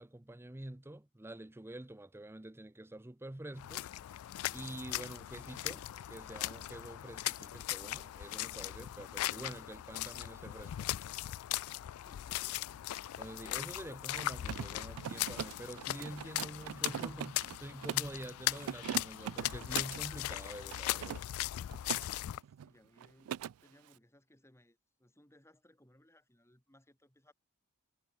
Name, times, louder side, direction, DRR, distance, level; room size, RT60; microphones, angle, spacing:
voice 1, 0.0-3.9 4.5-11.0 13.2-21.2, right 1 dB, 10° right, 0.6 m, -47 dB
sound 1, 3.6-22.4, left 15 dB, 75° left, 0.3 m, -39 dB
Mechanisms, 14.0-18.2 18.6-20.1 20.7-22.1 22.4-22.7 23.0-23.5, right 9 dB, 80° right, 0.3 m, -41 dB
sound 2, 14.6-20.3, left 2 dB, 45° left, 6.5 m, -65 dB
voice 2, 22.2-27.3, left 1 dB, 10° left, 5.2 m, -66 dB
head